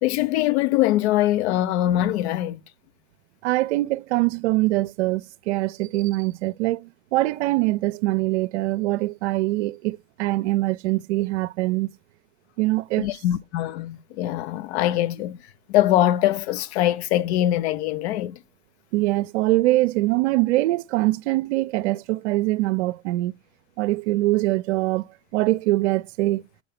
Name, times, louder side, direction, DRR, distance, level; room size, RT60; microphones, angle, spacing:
voice 1, 0.0-2.6 13.0-15.4 15.7-18.4, left 13 dB, 60° left, 0.7 m, -22 dB
voice 2, 3.4-11.9 12.6-13.1 18.9-23.3 23.8-26.4, right 19 dB, 65° right, 0.6 m, -23 dB
5.7 x 5.5 x 5.8 m
hypercardioid pair, 100°, 36 cm